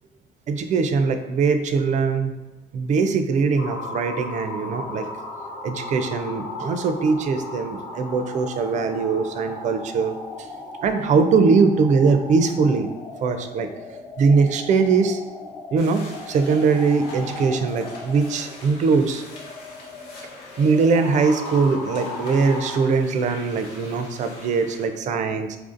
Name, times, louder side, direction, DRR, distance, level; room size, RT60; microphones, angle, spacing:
voice 1, 0.5-2.3 2.7-5.1 5.6-10.2 10.8-12.9 13.2-13.7 14.2-15.2 15.7-16.0 16.3-19.2 20.6-25.6, right 4 dB, 45° right, 7 dB, 0.4 m, -21 dB
sound 1, 3.6-22.8, left 2 dB, 45° left, 0.9 m, -37 dB
sound 2, 15.8-24.9, left 2 dB, 75° left, 1.0 m, -44 dB
4.5 x 2.5 x 2.4 m, 1.1 s
cardioid pair, 110°, 17 cm